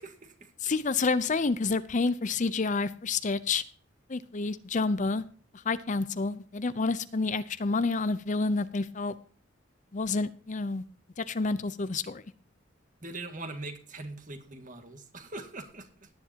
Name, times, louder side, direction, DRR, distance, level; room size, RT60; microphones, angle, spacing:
voice 1, 0.0-0.5 13.0-16.1, right 2 dB, 40° right, 6 dB, 1.9 m, -42 dB
voice 2, 0.6-3.6 4.1-5.2 5.6-9.1 9.9-10.8 11.2-12.2, left 3 dB, 40° left, 14 dB, 0.6 m, -29 dB
17.5 x 9.9 x 2.8 m, 0.41 s
head